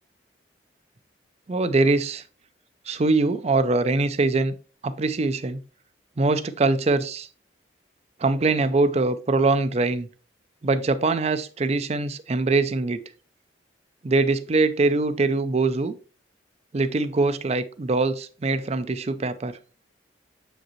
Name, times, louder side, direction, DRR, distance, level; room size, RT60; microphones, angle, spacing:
voice 1, 1.5-2.2 2.9-4.5 4.8-5.6 6.2-7.3 8.2-10.1 10.6-13.0 14.0-15.9 16.7-19.6, right 3 dB, 35° right, 0.5 m, -23 dB
7.1 x 5.1 x 3.0 m
head